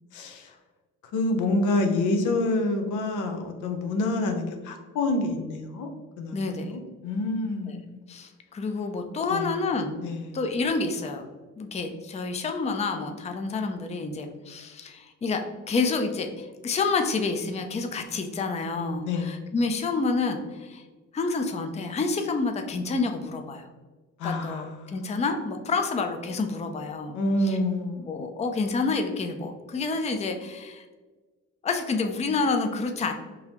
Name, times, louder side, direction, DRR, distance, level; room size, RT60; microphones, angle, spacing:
voice 1, 0.1-0.5 1.1-5.9 6.2-8.0 9.3-9.6 10.0-10.4 19.0-19.3 24.2-25.0 27.1-28.3, left 2 dB, 85° left, 5 dB, 0.7 m, -28 dB
voice 2, 6.3-6.8 7.7-7.8 8.1-10.0 10.3-11.3 11.6-15.4 15.7-20.8 21.1-23.7 24.2-27.2 27.5-27.6 28.0-30.8 31.6-33.1, left 4 dB, 25° left, 5 dB, 0.4 m, -28 dB
3.9 x 2.7 x 2.9 m, 1.3 s
cardioid pair, 90°, 30 cm